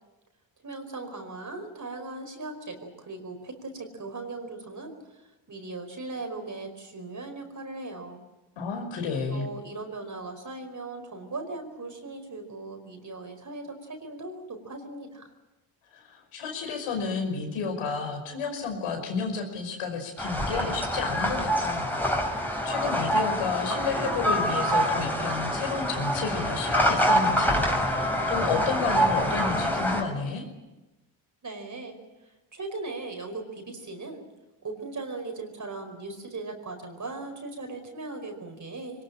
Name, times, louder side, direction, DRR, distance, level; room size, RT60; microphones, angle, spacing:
voice 1, 0.6-8.2 9.1-15.3 31.4-34.2 34.6-39.0, right 3 dB, 35° right, 4 dB, 5.0 m, -38 dB
voice 2, 8.6-9.5 15.9-30.5, left 5 dB, 85° left, 4 dB, 5.5 m, -31 dB
sound 1, 20.2-30.0, equal, 5° left, 5.7 m, -26 dB
22.0 x 20.5 x 8.9 m, 1.0 s
cardioid pair, 85°, 48 cm